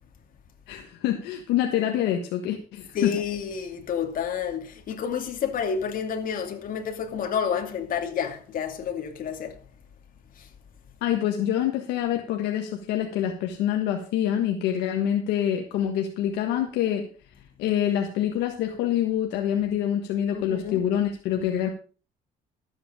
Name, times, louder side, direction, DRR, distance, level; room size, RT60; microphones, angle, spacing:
voice 1, 0.7-3.1 11.0-17.1 17.6-21.7, left 10 dB, 90° left, 1.4 m, -26 dB
voice 2, 2.9-9.6 10.4-10.5 20.3-20.8, left 7 dB, 55° left, 2.5 m, -30 dB
13.5 x 8.1 x 5.1 m
cardioid pair, 110°, 17 cm